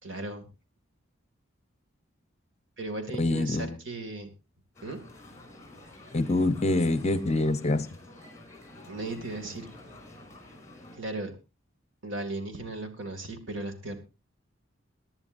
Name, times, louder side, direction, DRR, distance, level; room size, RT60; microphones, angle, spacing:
voice 1, 0.0-0.5 2.8-4.3 4.8-5.0 8.9-9.7 10.9-11.3 12.0-14.0, right 2 dB, 65° right, 6 dB, 2.4 m, -36 dB
voice 2, 3.2-3.7 6.1-7.9, left 2 dB, 35° left, 12 dB, 0.9 m, -25 dB
sound 1, 4.7-11.0, left 1 dB, 15° left, 5.0 m, -49 dB
23.0 x 10.5 x 2.6 m, 0.28 s
head